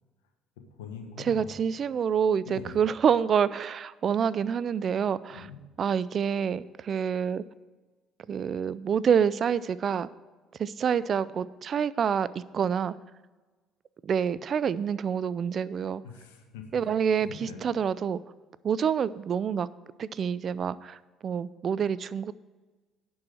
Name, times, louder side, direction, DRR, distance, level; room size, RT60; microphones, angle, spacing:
voice 1, 0.6-1.5 2.4-2.8 5.3-5.6 16.0-16.8 17.2-17.7, left 5 dB, 90° left, 4 dB, 1.3 m, -43 dB
voice 2, 1.2-5.5 5.8-7.4 8.3-10.1 10.6-12.9 14.0-16.0 16.7-18.2 18.6-19.7 20.0-22.3, right 7 dB, 50° right, 18 dB, 0.4 m, -27 dB
10.5 x 4.7 x 7.5 m, 1.3 s
hypercardioid pair, 65°, 0 cm